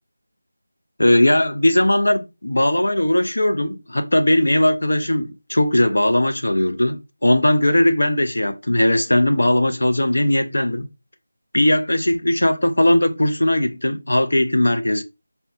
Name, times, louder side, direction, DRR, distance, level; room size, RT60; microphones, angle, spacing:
voice 1, 1.0-10.9 11.5-15.0, left 1 dB, 80° left, 0.4 m, -18 dB
2.6 x 2.2 x 2.6 m
figure-of-eight pair, 170°, 0 cm